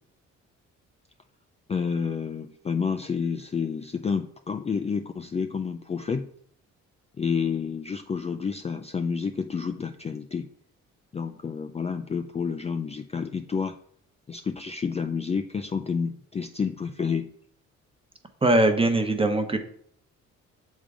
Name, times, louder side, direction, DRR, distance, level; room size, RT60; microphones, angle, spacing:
voice 1, 1.7-6.3 7.2-10.5 11.1-13.8 14.3-17.3, left 6 dB, 20° left, 6 dB, 0.4 m, -29 dB
voice 2, 18.4-19.6, right 2 dB, 20° right, 7 dB, 1.0 m, -21 dB
7.1 x 3.7 x 4.9 m, 0.63 s
cardioid pair, 90°, 30 cm